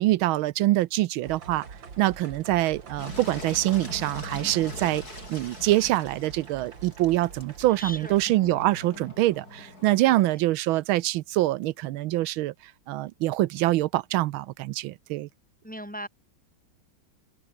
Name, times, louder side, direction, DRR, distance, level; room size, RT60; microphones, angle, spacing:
voice 1, 0.0-1.6 2.0-5.0 5.3-12.5 12.9-15.3, right 16 dB, 85° right, 1.4 m, -25 dB
sound 1, 1.2-8.3, right 5 dB, 65° right, 3.2 m, -44 dB
Engine, 3.0-10.3, left 2 dB, 45° left, 8.6 m, -42 dB
voice 2, 7.8-8.1 10.0-10.2 15.6-16.1, equal, 5° left, 2.7 m, -38 dB
open air
omnidirectional pair, 2.2 m